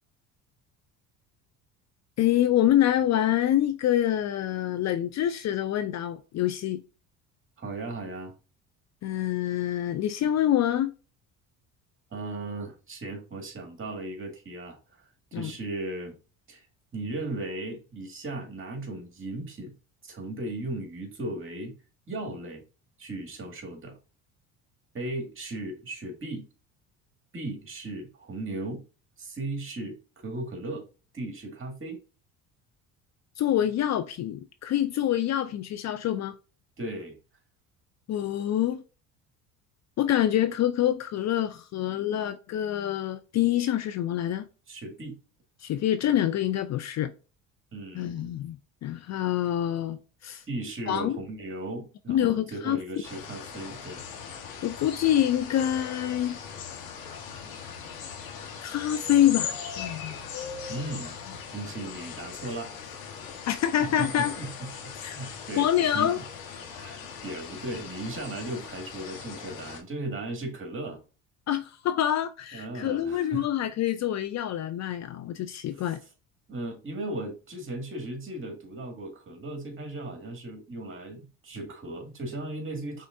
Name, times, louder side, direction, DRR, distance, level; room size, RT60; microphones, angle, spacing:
voice 1, 2.2-6.8 9.0-10.9 15.3-15.5 33.4-36.3 38.1-38.8 40.0-44.5 45.6-47.1 47.9-50.4 50.9-51.2 52.1-52.8 54.6-56.4 58.6-60.2 63.5-64.3 65.0-65.2 65.6-66.2 71.5-76.0, left 11 dB, 45° left, 0.5 m, -26 dB
voice 2, 7.6-8.3 12.1-16.2 16.5-16.7 16.9-19.7 20.0-21.7 22.1-22.6 23.0-24.0 24.9-26.5 27.3-28.8 29.2-30.8 31.1-32.0 36.8-37.2 44.7-45.2 47.7-48.3 50.5-54.0 60.7-61.1 61.5-62.7 63.8-65.7 65.9-66.2 66.7-71.0 72.5-73.5 75.7-76.0 76.5-83.1, right 2 dB, 30° right, 2.1 m, -36 dB
sound 1, 53.0-69.8, left 7 dB, 60° left, 1.5 m, -39 dB
5.3 x 3.7 x 2.6 m
supercardioid pair, 75°, 39 cm